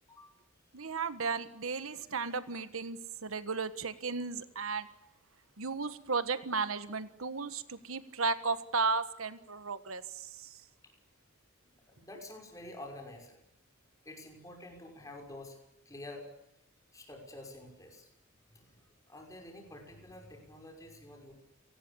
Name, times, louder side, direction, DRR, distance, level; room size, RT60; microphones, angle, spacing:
voice 1, 0.7-4.9 5.6-10.6, right 4 dB, 80° right, 12 dB, 1.4 m, -34 dB
voice 2, 11.7-13.4 14.0-15.6 15.9-16.3 16.9-18.1 18.5-18.8 19.1-21.3, left 1 dB, 15° left, 2 dB, 5.9 m, -48 dB
29.5 x 19.5 x 7.0 m, 0.83 s
head